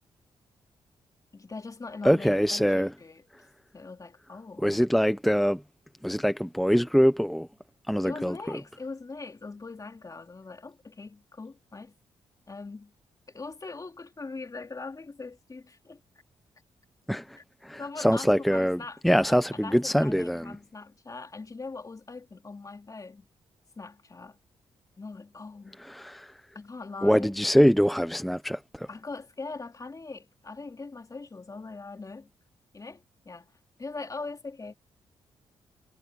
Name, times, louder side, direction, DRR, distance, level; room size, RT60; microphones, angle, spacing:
voice 1, 1.3-3.2 3.7-4.8 8.0-11.9 12.5-12.9 13.3-16.0 17.4-17.5 17.8-23.3 23.8-24.4 25.0-25.8 26.5-27.4 28.9-32.3 32.7-33.5 33.8-34.7, left 3 dB, 30° left, 3.0 m, -41 dB
voice 2, 2.0-2.9 4.6-5.6 6.0-7.5 7.9-8.4 17.1-17.4 17.6-20.6 25.9-26.3 27.0-28.9, equal, ahead, 1.0 m, -24 dB
cardioid pair, 65°, 11 cm